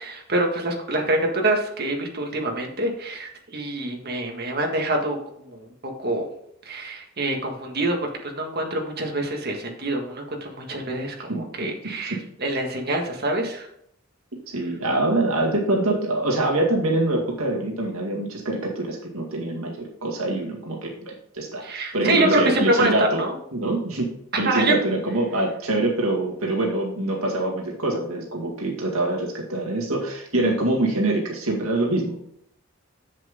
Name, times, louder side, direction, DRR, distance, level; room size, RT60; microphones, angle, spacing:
voice 1, 0.0-5.2 5.5-5.7 6.0-6.3 6.7-8.0 8.3-13.7 21.6-23.3 24.3-24.7, right 2 dB, 45° right, 2 dB, 1.7 m, -25 dB
voice 2, 11.8-12.2 14.5-23.2 23.5-24.1 24.4-32.2, right 2 dB, 80° right, -1 dB, 2.0 m, -25 dB
7.7 x 7.4 x 3.7 m, 0.70 s
head